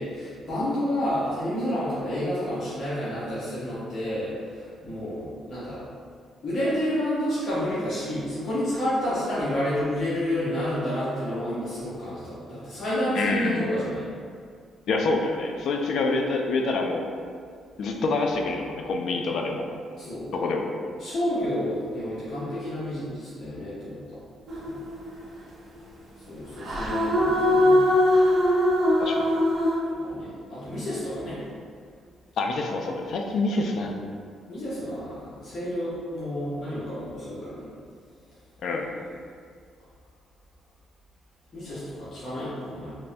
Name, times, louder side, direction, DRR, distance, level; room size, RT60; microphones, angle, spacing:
voice 1, 0.0-5.8 6.4-14.1 20.0-20.3 21.0-24.2 24.6-24.8 26.3-27.7 30.0-31.4 34.5-37.7 41.5-43.0, equal, 50° left, -10 dB, 0.8 m, -30 dB
voice 2, 13.1-13.7 14.9-17.1 17.8-19.7 20.3-20.7 29.0-29.3 32.4-34.0 38.6-38.9, left 3 dB, 70° left, 2 dB, 0.3 m, -26 dB
sound 1, 24.5-25.2 26.6-29.8, left 1 dB, 45° right, 0.5 m, -21 dB
3.1 x 2.1 x 2.6 m, 2.2 s
cardioid pair, 90°, 0 cm